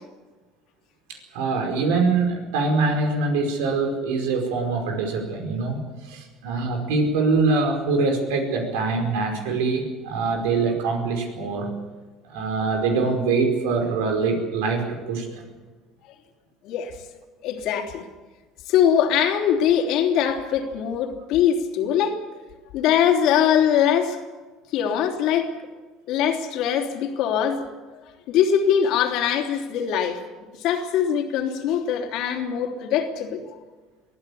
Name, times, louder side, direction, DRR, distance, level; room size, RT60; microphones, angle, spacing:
voice 1, 1.1-11.7 12.3-15.4, right 4 dB, 90° right, 3 dB, 5.0 m, -24 dB
voice 2, 17.4-18.0 18.7-22.2 22.7-24.2 24.7-25.5 26.1-27.6 28.3-30.2 30.6-33.4, left 9 dB, 70° left, 4 dB, 3.2 m, -22 dB
23.5 x 15.5 x 8.6 m, 1.3 s
supercardioid pair, 100°, 0 cm